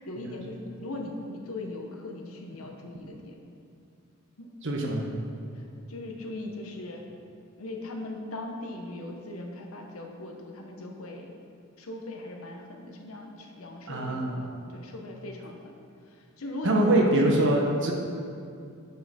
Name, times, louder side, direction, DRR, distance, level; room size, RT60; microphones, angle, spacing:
voice 1, 0.0-3.4 4.4-4.5 5.5-7.0 7.6-11.4 11.8-15.7 16.1-17.3, left 2 dB, 85° left, 2 dB, 1.1 m, -39 dB
voice 2, 4.6-5.0 13.9-14.5 16.6-17.9, right 1 dB, 60° right, 0 dB, 1.2 m, -23 dB
9.9 x 5.6 x 4.3 m, 2.4 s
head